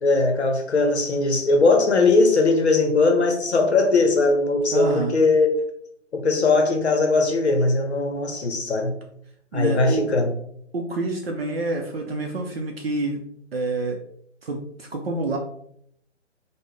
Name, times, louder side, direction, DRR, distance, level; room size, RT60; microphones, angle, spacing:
voice 1, 0.0-5.6 6.1-8.9 9.5-10.3, left 3 dB, 65° left, 4 dB, 0.7 m, -20 dB
voice 2, 4.7-5.1 9.5-10.1 10.7-13.2 13.5-14.0 14.4-15.4, right 2 dB, 55° right, 2 dB, 0.5 m, -27 dB
3.7 x 2.1 x 3.2 m, 0.69 s
figure-of-eight pair, 155°, 36 cm